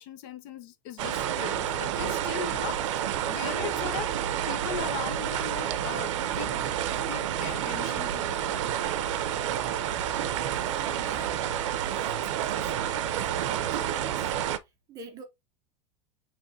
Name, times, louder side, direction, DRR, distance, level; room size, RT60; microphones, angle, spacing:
voice 1, 0.0-2.8 3.2-4.1 4.5-6.7 7.0-8.5, left 8 dB, 40° left, 0.6 m, -38 dB
sound 1, 1.0-14.6, right 10 dB, 80° right, 0.6 m, -29 dB
voice 2, 10.5-11.4 11.8-15.2, right 5 dB, 20° right, 0.6 m, -45 dB
6.0 x 3.1 x 2.7 m
supercardioid pair, 175°, 16 cm